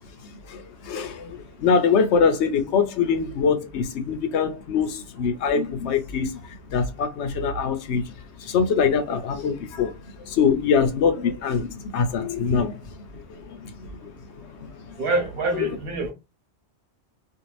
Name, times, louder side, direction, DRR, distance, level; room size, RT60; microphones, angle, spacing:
voice 1, 0.5-6.3 6.7-8.0 8.4-9.9 10.2-12.8 13.3-14.7 15.6-15.8, left 6 dB, 75° left, 0.9 m, -23 dB
voice 2, 15.0-16.1, right 2 dB, 60° right, 0.9 m, -25 dB
2.6 x 2.5 x 3.0 m
omnidirectional pair, 1.2 m